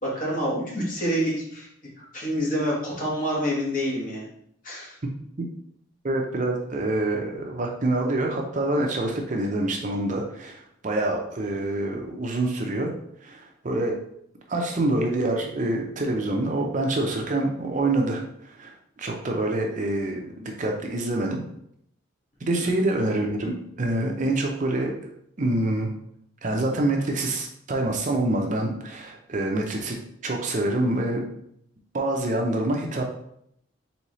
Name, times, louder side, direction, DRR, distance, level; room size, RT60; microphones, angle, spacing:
voice 1, 0.0-1.7 2.0-4.3 4.6-4.9 22.6-22.7, equal, 40° left, -4 dB, 1.4 m, -27 dB
voice 2, 6.0-12.9 13.2-14.0 14.5-21.4 22.4-23.5 23.8-24.9 25.4-25.9 26.4-30.0 30.2-31.2 31.9-33.0, right 2 dB, 35° right, 1 dB, 0.5 m, -26 dB
4.1 x 3.8 x 3.1 m, 0.71 s
head